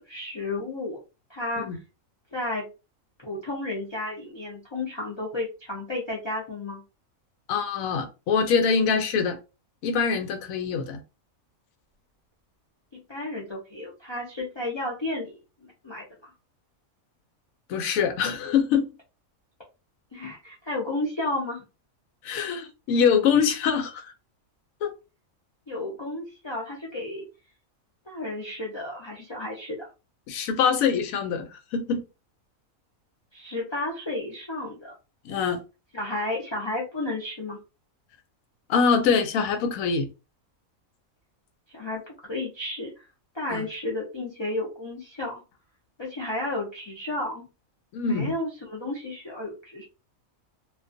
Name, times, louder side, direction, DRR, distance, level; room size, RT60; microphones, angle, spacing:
voice 1, 0.1-1.0 1.3-1.7 2.3-2.7 3.2-6.8 13.1-16.3 20.1-21.6 25.7-27.3 28.1-29.9 33.3-34.9 35.9-37.6 41.7-43.1 43.3-45.4 46.0-47.4 48.1-49.8, left 2 dB, 45° left, 0.3 m, -32 dB
voice 2, 7.5-9.4 9.8-11.0 17.7-18.9 22.2-24.1 24.8-24.9 30.3-32.0 35.2-35.6 38.7-40.1 43.5-43.6 47.9-48.3, left 6 dB, 80° left, 1.0 m, -24 dB
2.4 x 2.3 x 2.5 m
omnidirectional pair, 1.5 m